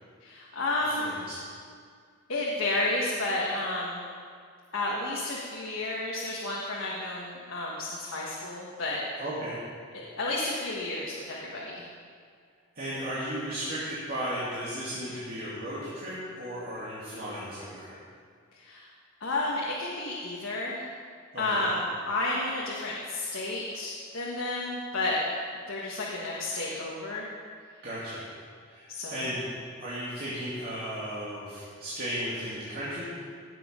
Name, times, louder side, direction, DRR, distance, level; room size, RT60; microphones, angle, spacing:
voice 1, 0.2-1.2 2.3-4.1 4.7-9.0 10.2-11.9 18.5-18.9 19.2-20.9 21.4-25.2 25.7-27.3 28.9-29.3, left 2 dB, 70° left, -4 dB, 1.6 m, -31 dB
voice 2, 0.9-1.4 9.2-9.6 12.7-18.0 21.3-21.6 27.8-28.3 28.7-29.4 29.8-33.0, equal, 45° right, -10 dB, 2.4 m, -35 dB
17.0 x 7.6 x 5.2 m, 2.1 s
head